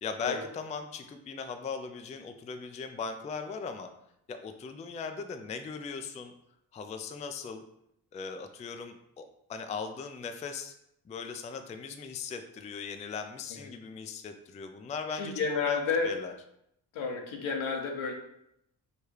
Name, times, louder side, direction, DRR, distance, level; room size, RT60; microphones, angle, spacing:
voice 1, 0.0-3.9 4.3-6.3 6.7-7.6 8.1-10.7 11.1-15.8 16.0-16.3, left 5 dB, 15° left, 7 dB, 0.3 m, -39 dB
voice 2, 15.2-16.2 16.9-18.1, left 4 dB, 75° left, 3 dB, 0.9 m, -31 dB
4.6 x 2.2 x 3.2 m, 0.78 s
hypercardioid pair, 50°, 46 cm